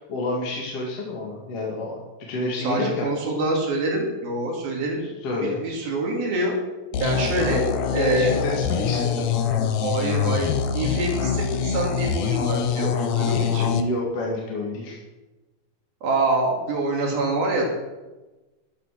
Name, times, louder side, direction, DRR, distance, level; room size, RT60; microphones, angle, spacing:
voice 1, 0.0-3.1 5.2-5.6 6.9-9.7 13.5-15.0, left 2 dB, 45° left, -3 dB, 2.9 m, -29 dB
voice 2, 2.6-5.0 5.4-6.6 7.0-7.6 7.9-8.4 9.8-13.7 16.0-17.7, right 2 dB, 70° right, 0 dB, 4.5 m, -25 dB
sound 1, 6.9-13.8, left 7 dB, 85° left, 1.5 m, -24 dB
13.0 x 10.5 x 6.6 m, 1.1 s
omnidirectional pair, 4.5 m